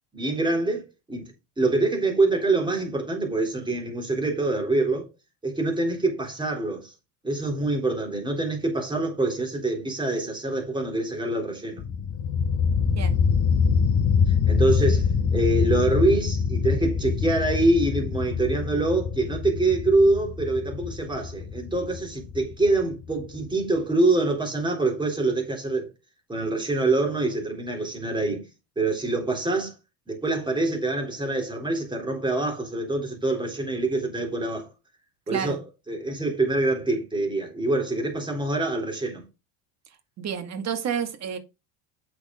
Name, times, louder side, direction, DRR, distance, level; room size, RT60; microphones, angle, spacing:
voice 1, 0.1-5.1 5.4-6.9 7.2-11.8 14.5-25.9 26.3-28.5 28.8-29.7 30.1-34.7 35.3-39.2, right 2 dB, 10° right, 3.8 m, -25 dB
sound 1, 11.8-23.4, left 6 dB, 35° left, 1.0 m, -24 dB
voice 2, 40.2-41.4, right 8 dB, 40° right, 2.4 m, -29 dB
8.4 x 6.6 x 3.9 m
supercardioid pair, 120°, 43 cm